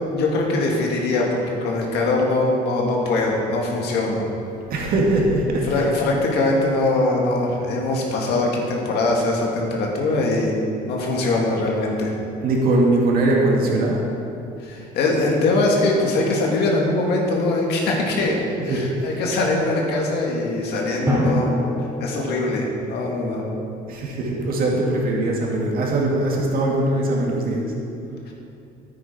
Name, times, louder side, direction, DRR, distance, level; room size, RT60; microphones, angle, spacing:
voice 1, 0.1-4.3 5.7-10.6 10.8-12.1 14.6-21.5 22.0-23.4 28.3-28.4, left 2 dB, 80° left, -1 dB, 2.0 m, -22 dB
voice 2, 4.7-5.9 12.4-14.1 18.7-19.1 23.9-27.7, right 2 dB, 60° right, -2 dB, 2.2 m, -21 dB
Drum, 21.1-22.9, equal, 20° right, 2.7 m, -25 dB
10.0 x 8.9 x 4.4 m, 2.7 s
cardioid pair, 110°, 17 cm